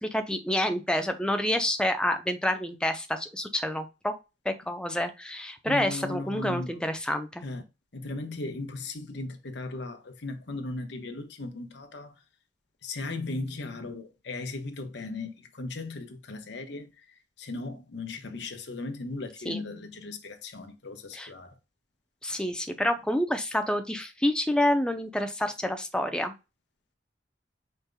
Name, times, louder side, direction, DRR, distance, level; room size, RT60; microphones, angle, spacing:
voice 1, 0.0-4.1 4.4-7.4 19.5-19.6 21.1-21.3 22.2-26.3, left 1 dB, 5° left, 0.6 m, -28 dB
voice 2, 5.6-6.8 7.4-7.6 7.9-12.2 12.8-21.6, left 2 dB, 70° left, 1.0 m, -37 dB
5.2 x 4.5 x 2.2 m
head